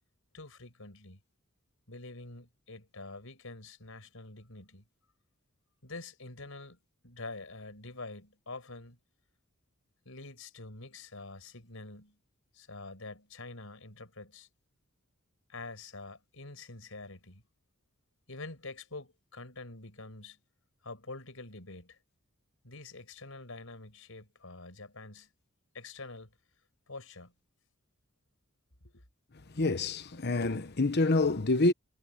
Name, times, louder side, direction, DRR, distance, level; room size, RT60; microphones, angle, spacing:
voice 1, 0.3-1.2 1.9-4.8 5.8-6.8 7.0-9.0 10.0-12.2 12.5-14.5 15.5-17.4 18.3-20.4 20.8-22.0 22.6-25.3 25.7-26.3 26.9-27.3 28.8-29.0, left 3 dB, 70° left, 6.4 m, -46 dB
voice 2, 29.5-31.7, left 2 dB, 50° left, 1.1 m, -27 dB
head